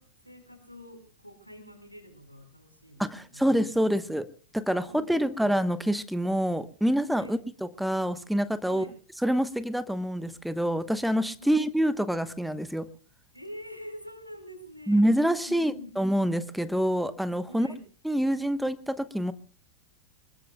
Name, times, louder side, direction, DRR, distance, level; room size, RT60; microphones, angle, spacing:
voice 1, 0.0-4.1 4.7-5.4 7.2-7.4 8.7-9.0 11.4-11.6 13.3-15.1 15.5-16.0 17.5-17.8, left 1 dB, 90° right, 8 dB, 4.5 m, -46 dB
voice 2, 3.0-4.3 4.5-7.4 7.8-8.8 9.2-12.9 14.9-17.7 18.0-19.3, equal, ahead, 13 dB, 1.0 m, -26 dB
25.5 x 21.5 x 2.3 m, 0.39 s
figure-of-eight pair, 90°, 0 cm